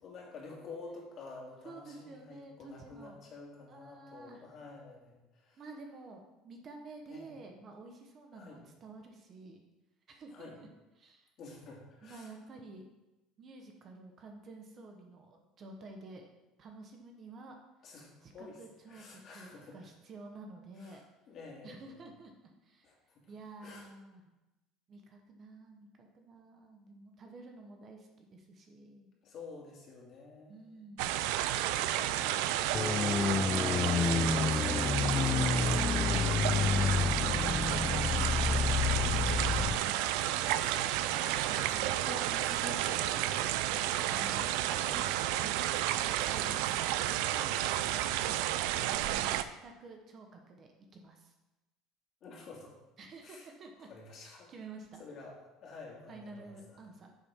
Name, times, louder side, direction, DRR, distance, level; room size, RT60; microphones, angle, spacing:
voice 1, 0.0-5.6 7.1-7.4 8.3-8.6 10.3-10.6 11.4-12.3 17.8-18.6 18.9-19.8 20.8-21.0 21.3-22.0 22.8-23.2 23.6-23.9 29.2-30.8 31.8-32.4 33.1-39.3 40.5-44.5 44.8-45.6 46.2-48.3 52.2-52.8 53.2-53.5 53.9-54.5 55.0-56.5, left 3 dB, 40° left, -2 dB, 2.4 m, -50 dB
voice 2, 1.6-3.2 3.7-4.5 5.6-9.6 10.1-10.7 11.0-11.3 12.0-12.9 13.4-16.3 16.6-17.5 18.2-21.0 21.6-22.9 23.3-24.2 24.9-29.1 30.5-32.4 38.9-40.6 41.4-42.0 44.0-45.6 46.0-47.2 48.2-48.4 48.8-51.3 53.0-53.9 54.2-55.0 56.1-57.1, right 3 dB, 30° right, 3 dB, 1.1 m, -51 dB
sound 1, 31.0-49.4, right 13 dB, 75° right, 0.4 m, -31 dB
sound 2, 32.7-39.8, left 6 dB, 20° left, 0.4 m, -29 dB
9.7 x 7.1 x 3.7 m, 1.0 s
cardioid pair, 155°, 0 cm